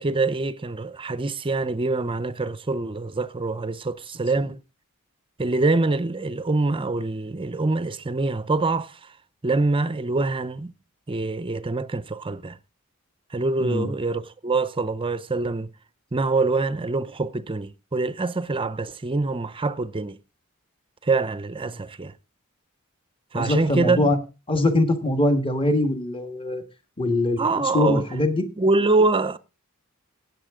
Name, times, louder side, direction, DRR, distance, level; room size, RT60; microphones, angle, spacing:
voice 1, 0.0-4.6 5.4-9.1 9.4-10.7 11.1-12.6 13.3-15.7 16.1-20.2 21.0-22.1 23.3-24.1 27.4-28.0 28.6-29.4, right 3 dB, 25° right, 0.6 m, -25 dB
voice 2, 23.3-24.2 24.5-26.6 27.0-27.4 27.7-28.5, left 1 dB, 25° left, 1.6 m, -22 dB
16.5 x 8.4 x 3.7 m
head